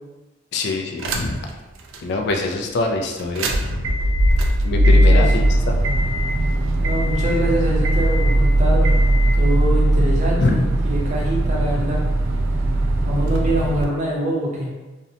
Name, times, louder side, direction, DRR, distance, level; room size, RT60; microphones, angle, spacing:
voice 1, 0.5-1.4 2.0-3.9 4.6-6.1 10.4-10.6, left 2 dB, 60° left, 3 dB, 0.3 m, -24 dB
sound 1, 1.0-1.5 1.9-2.0 3.2-13.8, right 1 dB, 80° right, 0.3 m, -18 dB
voice 2, 6.8-9.0 9.4-10.6 10.9-12.0 13.0-14.7, equal, 35° right, -4 dB, 0.6 m, -24 dB
2.6 x 2.1 x 2.7 m, 1.2 s
head